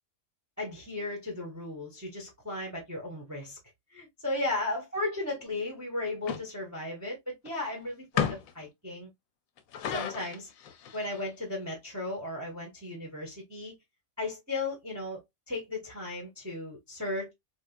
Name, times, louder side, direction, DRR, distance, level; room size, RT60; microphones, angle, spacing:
voice 1, 0.6-3.6 3.9-9.1 9.9-10.5 10.9-13.7 14.2-15.2 15.5-17.3, left 2 dB, 15° right, 0.8 m, -35 dB
sound 1, 6.3-6.4 7.5-7.6 8.2-8.6 9.6-11.3, left 8 dB, 75° left, 1.0 m, -33 dB
3.5 x 2.3 x 2.3 m
omnidirectional pair, 1.5 m